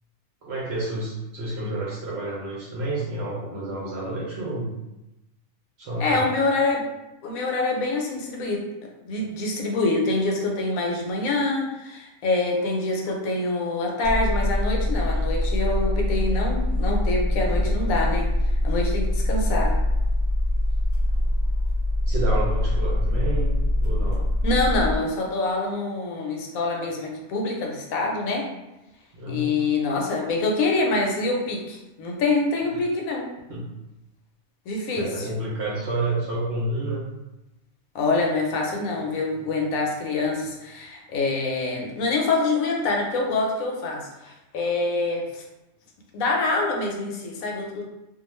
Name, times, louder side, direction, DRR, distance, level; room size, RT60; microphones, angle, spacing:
voice 1, 0.4-4.7 5.8-6.3 22.1-23.6 23.8-24.3 29.1-29.7 32.7-32.8 33.5-33.6 34.9-37.0, right 2 dB, 60° right, -5 dB, 0.7 m, -29 dB
voice 2, 6.0-6.8 7.2-8.6 9.1-18.3 18.6-19.7 24.4-28.5 29.3-33.3 34.7-35.1 37.9-45.4 46.1-47.9, left 3 dB, 75° left, 0 dB, 1.0 m, -25 dB
sound 1, 14.0-25.0, left 1 dB, 20° left, 0.5 m, -23 dB
2.4 x 2.3 x 3.0 m, 0.97 s
omnidirectional pair, 1.5 m